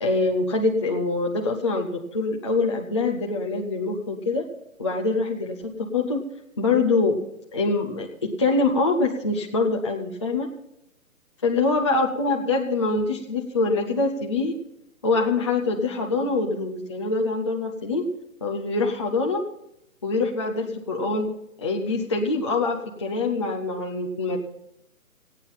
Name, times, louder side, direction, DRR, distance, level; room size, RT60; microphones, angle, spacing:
voice 1, 0.0-4.4 4.8-6.2 6.6-7.2 7.5-10.5 11.4-14.5 15.0-18.1 18.4-19.4 20.0-21.3 21.6-24.4, left 3 dB, 20° left, -1 dB, 0.6 m, -24 dB
16.0 x 9.1 x 5.5 m, 0.82 s
hypercardioid pair, 160°, 43 cm